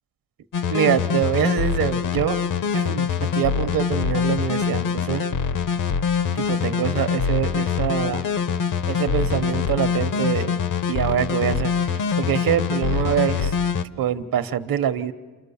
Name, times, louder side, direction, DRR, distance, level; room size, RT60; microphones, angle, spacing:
sound 1, 0.5-13.8, left 6 dB, 55° left, 0.8 m, -24 dB
voice 1, 0.7-2.5 2.7-5.3 6.3-8.2 8.9-10.6 10.9-13.6 14.0-15.1, right 9 dB, 60° right, 11 dB, 1.1 m, -24 dB
29.5 x 26.0 x 7.1 m, 1.4 s
wide cardioid pair, 160°, 39 cm